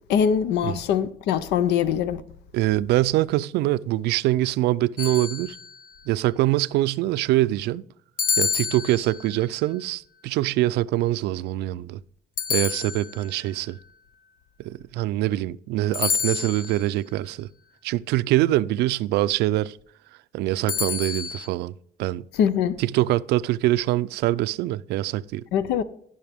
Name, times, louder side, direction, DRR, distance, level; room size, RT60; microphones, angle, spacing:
voice 1, 0.1-2.2 22.3-22.8 25.5-25.8, left 8 dB, 80° left, 0.6 m, -22 dB
voice 2, 2.5-5.6 6.1-7.8 8.4-12.0 12.5-13.8 14.6-17.5 17.8-19.8 20.3-21.7 22.0-22.3 22.8-25.4, right 15 dB, 80° right, 0.4 m, -24 dB
sound 1, 5.0-5.9 8.2-9.4 12.4-13.4 15.9-16.9 20.7-21.5, left 6 dB, 55° left, 1.0 m, -28 dB
16.0 x 5.6 x 3.5 m
cardioid pair, 110°, 17 cm